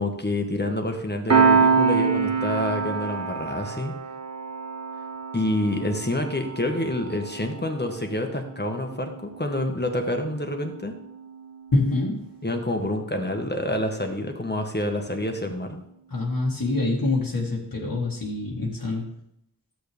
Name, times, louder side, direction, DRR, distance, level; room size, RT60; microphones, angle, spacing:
voice 1, 0.0-3.9 5.3-10.9 12.4-15.8, left 1 dB, 30° left, 3 dB, 1.4 m, -27 dB
Piano, 1.3-12.4, right 5 dB, 45° right, 1.1 m, -27 dB
voice 2, 11.7-12.3 16.1-19.1, left 2 dB, 75° left, -4 dB, 1.8 m, -25 dB
12.0 x 7.7 x 3.5 m, 0.77 s
wide cardioid pair, 50°, 35 cm